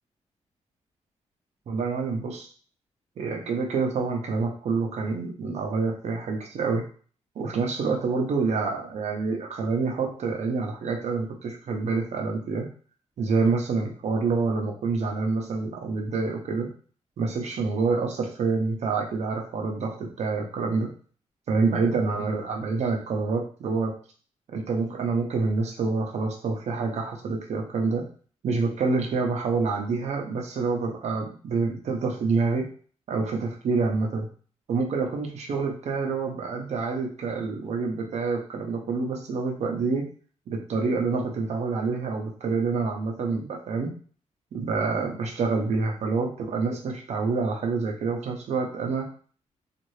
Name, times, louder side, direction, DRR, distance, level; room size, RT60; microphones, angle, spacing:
voice 1, 1.7-2.5 3.2-6.8 7.4-12.7 13.2-16.7 17.2-20.9 21.5-23.9 24.5-28.0 28.4-32.7 33.1-34.3 34.7-40.1 40.5-43.9 44.5-49.1, right 4 dB, 65° right, 2 dB, 0.7 m, -27 dB
2.7 x 2.5 x 3.1 m, 0.43 s
wide cardioid pair, 140°, 12 cm